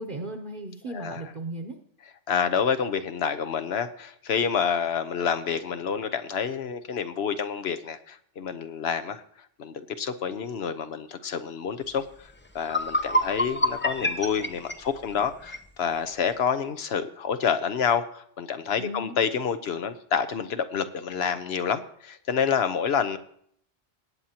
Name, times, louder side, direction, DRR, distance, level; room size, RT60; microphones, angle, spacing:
voice 1, 0.0-1.8 18.7-19.2, right 1 dB, 50° right, 3 dB, 1.0 m, -36 dB
voice 2, 0.9-1.2 2.3-9.2 9.6-23.2, left 7 dB, 65° left, 10 dB, 1.0 m, -28 dB
sound 1, 12.2-12.3 12.6-15.7, equal, 15° left, 0.3 m, -27 dB
19.0 x 8.8 x 2.9 m, 0.64 s
omnidirectional pair, 1.2 m